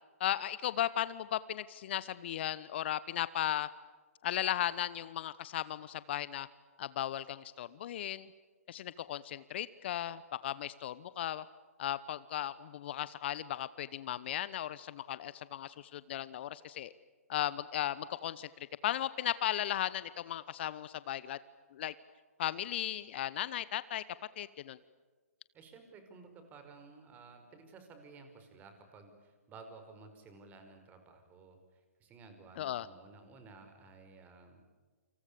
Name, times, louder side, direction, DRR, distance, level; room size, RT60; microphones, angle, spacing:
voice 1, 0.2-3.7 4.2-6.5 6.8-8.3 8.7-11.4 11.8-16.9 17.3-18.5 18.8-21.4 21.7-21.9 22.4-24.0 24.4-24.8 32.6-32.9, left 12 dB, 45° left, 17 dB, 0.9 m, -36 dB
voice 2, 25.5-34.6, right 4 dB, 20° right, 7 dB, 5.4 m, -55 dB
28.5 x 27.0 x 6.9 m, 1.5 s
figure-of-eight pair, 130°, 8 cm